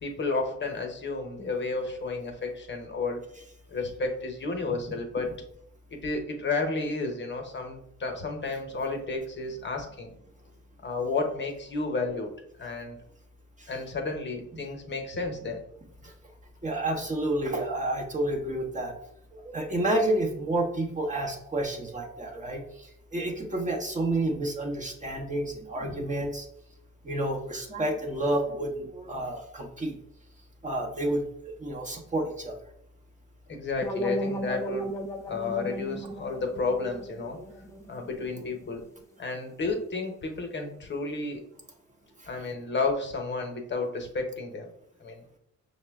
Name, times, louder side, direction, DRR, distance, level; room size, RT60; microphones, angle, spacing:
voice 1, 0.0-3.2 3.7-5.4 5.9-10.1 10.8-12.3 12.6-13.0 13.7-15.6 33.5-34.9 35.3-37.4 37.9-38.9 39.2-41.4 42.3-44.7 45.0-45.2, left 3 dB, 40° left, 3 dB, 0.8 m, -32 dB
voice 2, 16.6-18.9 19.3-26.5 27.0-30.0 30.6-32.6 37.2-37.8, right 1 dB, 25° right, 1 dB, 0.8 m, -30 dB
sound 1, 33.8-38.7, equal, 10° left, 0.5 m, -36 dB
5.6 x 2.1 x 3.4 m, 0.75 s
cardioid pair, 90°, 30 cm